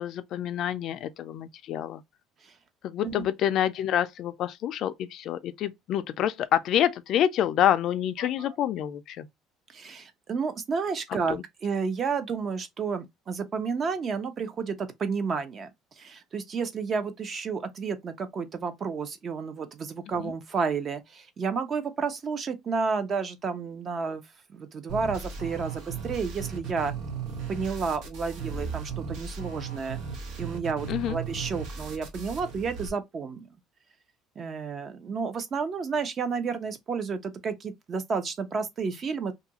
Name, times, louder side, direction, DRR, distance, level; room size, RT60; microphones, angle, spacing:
voice 1, 0.0-2.0 2.8-9.3 11.3-11.4 20.2-20.3 30.9-31.2, left 11 dB, 50° left, 0.3 m, -27 dB
voice 2, 9.7-15.7 16.0-24.2 24.5-26.9 27.5-30.0 30.4-33.5 34.4-39.3, right 5 dB, 35° right, 0.5 m, -31 dB
sound 1, 24.9-32.9, right 5 dB, 70° right, 1.0 m, -36 dB
2.6 x 2.4 x 2.8 m
cardioid pair, 145°, 0 cm